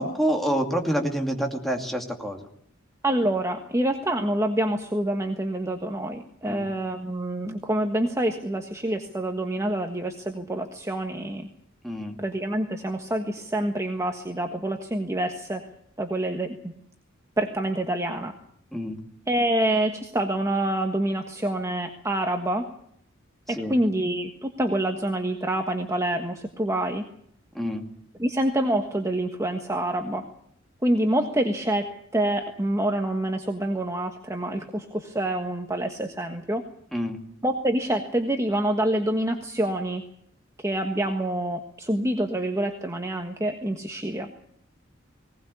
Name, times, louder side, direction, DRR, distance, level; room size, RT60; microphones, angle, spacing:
voice 1, 0.0-2.5 6.4-6.7 11.8-12.2 18.7-19.0 23.6-23.7 27.5-27.8 36.9-37.2, equal, ahead, 3 dB, 2.6 m, -27 dB
voice 2, 3.0-11.5 12.2-15.6 16.0-16.7 17.4-18.3 19.3-22.7 23.5-27.1 28.2-30.2 30.8-36.6 37.4-40.0 40.6-44.3, right 1 dB, 15° right, 4 dB, 1.4 m, -26 dB
20.0 x 18.5 x 8.5 m, 0.68 s
head